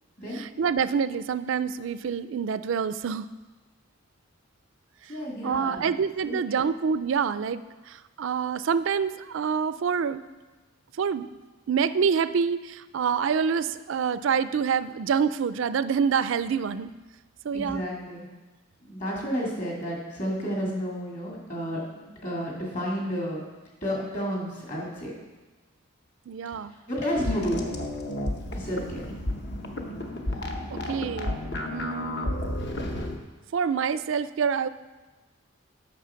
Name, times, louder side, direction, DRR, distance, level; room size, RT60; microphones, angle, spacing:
voice 1, 0.3-3.3 5.4-10.2 11.0-11.3 11.7-16.9 17.4-17.8 26.3-26.7 30.7-32.4 33.5-34.7, right 6 dB, 65° right, 14 dB, 0.4 m, -27 dB
voice 2, 5.1-5.9 6.2-6.6 17.5-18.3 18.8-23.4 23.8-25.1 26.7-27.6 28.5-29.0, equal, 35° left, -3 dB, 2.4 m, -31 dB
sound 1, 27.2-33.2, left 1 dB, 50° left, 0.9 m, -32 dB
8.4 x 6.4 x 5.7 m, 1.2 s
head